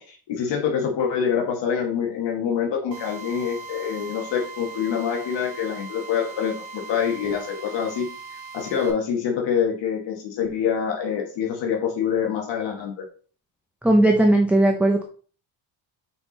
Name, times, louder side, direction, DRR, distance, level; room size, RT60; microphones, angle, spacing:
voice 1, 0.0-8.1 8.5-13.0, left 7 dB, 75° left, 1 dB, 1.5 m, -26 dB
Drill, 2.9-8.9, right 4 dB, 70° right, 1.8 m, -39 dB
voice 2, 13.8-15.0, right 1 dB, 5° right, 2 dB, 0.4 m, -17 dB
5.7 x 4.3 x 3.9 m, 0.41 s
cardioid pair, 170°, 44 cm